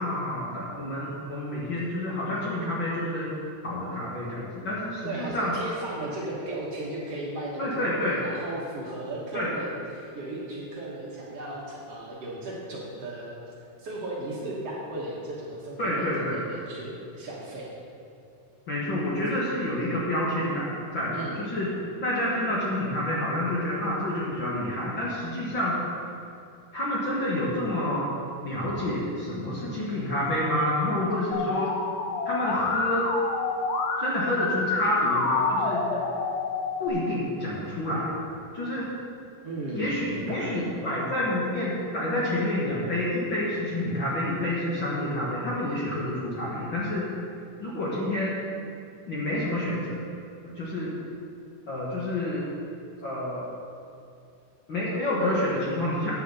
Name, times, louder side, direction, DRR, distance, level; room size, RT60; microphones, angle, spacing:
voice 1, 0.0-3.3 3.6-5.5 7.6-8.2 9.3-9.5 15.8-16.4 18.7-20.7 20.9-21.7 22.0-25.8 26.7-28.1 28.4-31.7 32.3-33.1 34.0-35.9 36.8-38.1 38.5-38.9 39.7-47.1 47.6-48.4 49.1-50.0 50.4-50.9 51.7-52.4 53.0-53.5 54.7-56.1, left 1 dB, 50° left, -6 dB, 1.7 m, -28 dB
voice 2, 5.0-13.4 13.8-17.7 21.1-21.4 39.4-40.6, right 2 dB, 55° right, -4 dB, 2.1 m, -35 dB
Musical instrument, 31.3-36.9, left 4 dB, 80° left, 2.5 m, -28 dB
9.8 x 6.5 x 6.9 m, 2.5 s
omnidirectional pair, 3.7 m